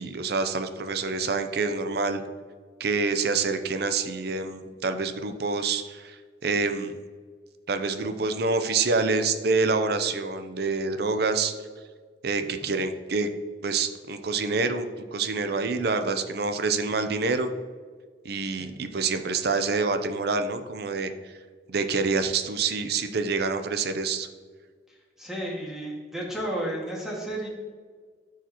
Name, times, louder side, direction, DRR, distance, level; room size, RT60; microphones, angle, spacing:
voice 1, 0.0-2.2 2.8-6.9 7.7-11.5 12.2-13.3 13.6-17.5 18.2-21.1 21.7-24.3, right 4 dB, 60° right, 8 dB, 0.6 m, -27 dB
voice 2, 25.2-27.5, right 1 dB, 5° right, -5 dB, 1.9 m, -33 dB
13.0 x 4.9 x 3.0 m, 1.5 s
head